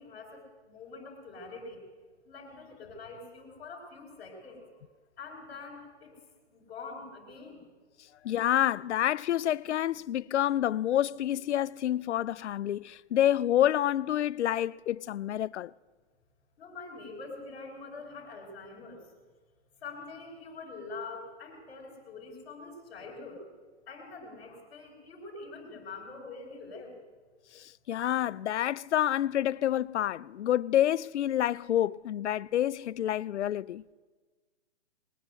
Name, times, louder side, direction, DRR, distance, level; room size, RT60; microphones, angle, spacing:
voice 1, 0.0-1.8 2.2-4.6 5.2-6.2 6.5-7.6 16.6-19.1 19.8-23.4 23.9-27.0, left 3 dB, 15° left, 2.8 m, -45 dB
voice 2, 8.2-15.7 27.5-33.8, left 12 dB, 75° left, 0.5 m, -28 dB
20.0 x 9.2 x 7.6 m
hypercardioid pair, 180°, 35 cm